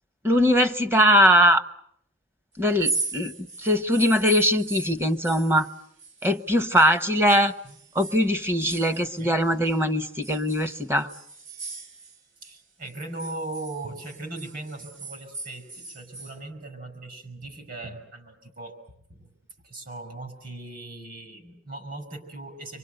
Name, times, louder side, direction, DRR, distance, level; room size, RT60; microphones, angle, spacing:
voice 1, 0.2-1.6 2.6-3.3 3.6-5.7 6.2-7.5 7.9-11.1, equal, 15° right, 9 dB, 1.2 m, -21 dB
sound 1, 2.7-6.9 7.2-9.8 10.2-12.6 12.9-16.4, right 3 dB, 70° right, 2.3 m, -37 dB
voice 2, 12.4-18.8 19.1-19.3 19.6-22.8, right 2 dB, 50° right, 5 dB, 5.4 m, -39 dB
27.5 x 24.5 x 8.0 m, 0.68 s
head